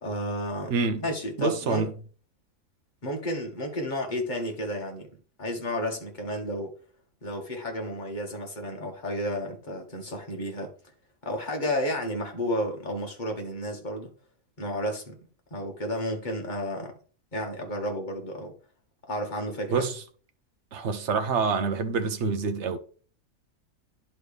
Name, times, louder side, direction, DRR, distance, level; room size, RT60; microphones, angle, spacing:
voice 1, 0.0-0.7 1.0-1.9 3.0-5.1 5.4-6.7 7.2-10.7 11.2-14.1 14.6-15.2 15.5-16.9 17.3-18.5 19.1-19.8, left 1 dB, 35° left, 1.9 m, -32 dB
voice 2, 0.7-1.1 1.4-1.9 19.7-20.0 20.7-22.8, right 4 dB, 60° right, 1.2 m, -27 dB
11.0 x 4.4 x 3.4 m
omnidirectional pair, 1.4 m